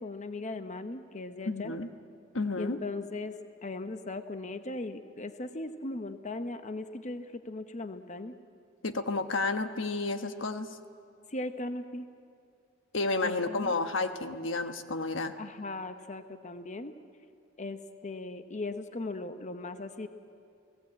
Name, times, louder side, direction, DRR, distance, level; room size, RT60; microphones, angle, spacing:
voice 1, 0.0-1.7 2.6-3.4 3.6-8.4 11.3-12.1 13.2-13.7 15.4-16.9 17.6-20.1, left 2 dB, 40° left, 9 dB, 0.9 m, -38 dB
voice 2, 1.5-1.9 2.3-2.8 8.8-10.7 12.9-15.3, left 3 dB, 80° left, 8 dB, 1.3 m, -31 dB
30.0 x 18.0 x 8.6 m, 2.4 s
head